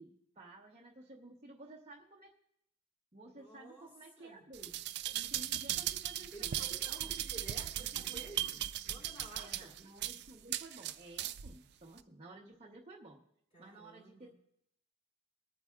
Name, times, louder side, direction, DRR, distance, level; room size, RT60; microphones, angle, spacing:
voice 1, 0.0-2.3 3.1-4.7 5.1-7.2 7.8-8.6 9.3-13.2 13.6-14.3, right 2 dB, 30° right, -3 dB, 1.0 m, -54 dB
voice 2, 3.3-3.9 4.2-4.4 6.3-9.7 13.5-14.3, right 2 dB, 30° left, -1 dB, 3.5 m, -53 dB
sound 1, 4.5-11.5 12.0-12.1, right 12 dB, 50° right, 0.4 m, -38 dB
21.0 x 8.9 x 2.4 m, 0.75 s
head